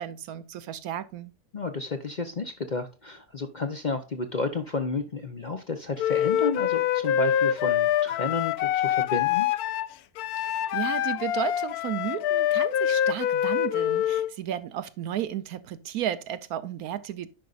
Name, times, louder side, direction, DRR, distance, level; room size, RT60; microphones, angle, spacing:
voice 1, 0.0-1.3 10.4-17.3, right 10 dB, 80° right, 1.2 m, -33 dB
voice 2, 1.5-9.5, left 3 dB, 40° left, 0.7 m, -31 dB
Wind instrument woodwind instrument, 6.0-14.3, left 10 dB, 80° left, 1.1 m, -25 dB
10.0 x 5.4 x 2.4 m
omnidirectional pair, 1.6 m